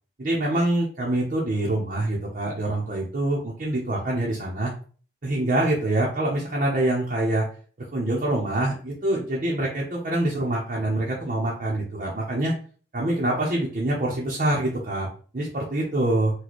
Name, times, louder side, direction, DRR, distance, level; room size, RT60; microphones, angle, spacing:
voice 1, 0.2-4.7 5.2-7.5 7.9-12.5 12.9-16.3, right 1 dB, 45° right, -4 dB, 0.7 m, -25 dB
4.1 x 2.2 x 3.0 m, 0.42 s
head